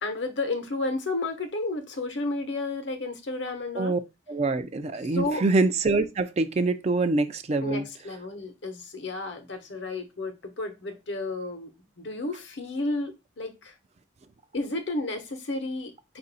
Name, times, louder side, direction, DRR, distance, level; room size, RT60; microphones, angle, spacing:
voice 1, 0.0-3.9 5.0-5.4 7.6-11.7 12.0-13.7 14.5-16.2, left 2 dB, 70° left, 0.9 m, -32 dB
voice 2, 4.3-7.9, right 3 dB, 35° right, 0.4 m, -25 dB
5.1 x 2.6 x 4.0 m
head